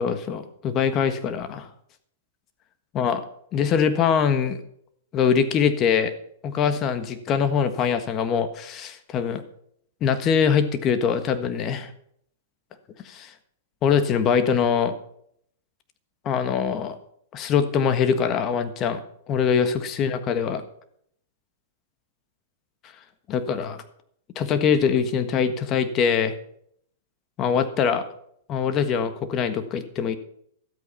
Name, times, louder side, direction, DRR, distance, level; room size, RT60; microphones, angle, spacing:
voice 1, 0.0-1.7 2.9-3.2 3.5-4.6 5.1-6.1 6.4-9.4 10.0-11.9 13.0-13.3 13.8-14.9 16.2-16.9 17.3-19.0 19.3-20.6 23.3-23.8 24.3-26.3 27.4-28.0 28.5-30.2, left 7 dB, 35° left, 10 dB, 1.5 m, -23 dB
12.5 x 8.4 x 5.7 m, 0.67 s
hypercardioid pair, 130°, 0 cm